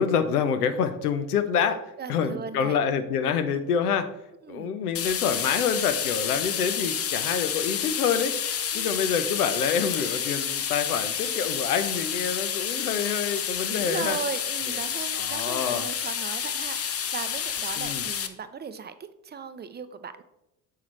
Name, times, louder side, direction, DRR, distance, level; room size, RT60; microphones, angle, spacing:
voice 1, 0.0-1.8 2.1-4.1 4.5-8.3 8.7-14.2 15.2-15.8 17.8-18.0, left 7 dB, 90° left, 10 dB, 0.6 m, -27 dB
voice 2, 2.0-2.8 4.4-4.8 8.7-8.9 13.7-18.9 19.2-20.2, right 6 dB, 25° right, 11 dB, 0.5 m, -37 dB
sound 1, 4.9-18.3, left 8 dB, 35° left, 0.6 m, -29 dB
6.3 x 5.7 x 3.1 m, 0.90 s
hypercardioid pair, 65°, 44 cm